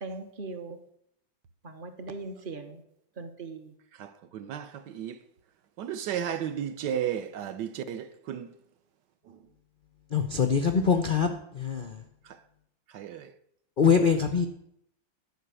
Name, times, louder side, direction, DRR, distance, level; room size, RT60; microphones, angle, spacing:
voice 1, 0.0-0.8 1.6-2.8 3.2-3.6, right 3 dB, 40° right, 0.7 m, -39 dB
voice 2, 4.0-5.2 5.8-8.5 12.9-13.3, right 9 dB, 70° right, 1.3 m, -33 dB
voice 3, 10.1-12.0 13.8-14.5, left 6 dB, 85° left, 0.4 m, -24 dB
11.0 x 5.4 x 8.2 m
omnidirectional pair, 2.1 m